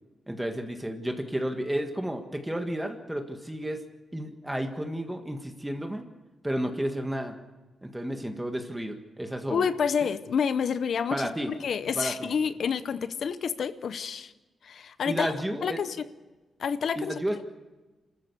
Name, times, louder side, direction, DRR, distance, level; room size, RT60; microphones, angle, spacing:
voice 1, 0.3-3.8 4.1-6.0 6.4-7.4 7.8-9.7 11.1-11.5 12.0-12.3 15.1-15.8 16.9-17.4, right 1 dB, 10° right, 5 dB, 1.6 m, -32 dB
voice 2, 9.5-14.3 14.6-15.3 15.6-16.1 16.6-17.1, left 6 dB, 70° left, 13 dB, 0.9 m, -29 dB
27.5 x 14.0 x 6.8 m, 1.2 s
wide cardioid pair, 110°, 0 cm